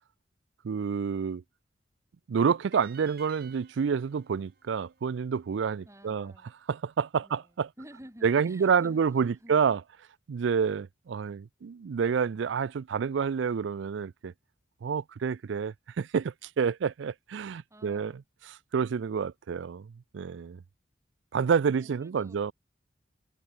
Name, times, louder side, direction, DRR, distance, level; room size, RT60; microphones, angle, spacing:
voice 1, 0.6-1.4 2.3-6.3 6.7-7.7 8.2-9.8 10.3-14.3 14.8-18.1 18.7-20.6 21.3-22.5, right 6 dB, 75° right, 0.4 m, -28 dB
sound 1, 2.7-5.9, right 8 dB, 55° right, 3.2 m, -55 dB
voice 2, 5.8-6.5 7.2-9.5 17.7-18.2 21.7-22.4, equal, 15° right, 3.8 m, -51 dB
head